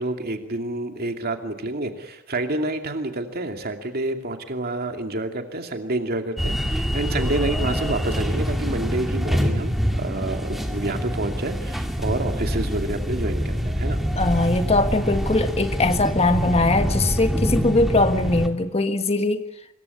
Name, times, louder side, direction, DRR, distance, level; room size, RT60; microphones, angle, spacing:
voice 1, 0.0-14.0, right 2 dB, 45° right, 5 dB, 2.6 m, -28 dB
sound 1, 6.4-18.5, equal, ahead, 2.4 m, -25 dB
voice 2, 14.2-19.4, left 2 dB, 30° left, 8 dB, 1.6 m, -21 dB
25.5 x 23.0 x 9.7 m, 0.84 s
head